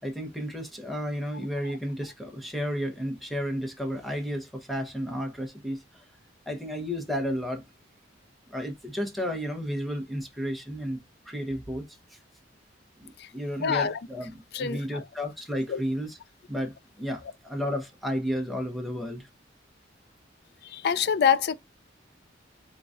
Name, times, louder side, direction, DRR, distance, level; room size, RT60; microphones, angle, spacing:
voice 1, 0.0-6.0 6.5-7.6 8.5-12.2 13.0-16.2 16.5-19.3, equal, ahead, 0.9 m, -32 dB
voice 2, 13.6-14.0 14.5-15.0 15.7-15.8 20.6-21.5, left 7 dB, 60° left, 0.4 m, -25 dB
3.8 x 3.8 x 2.5 m
head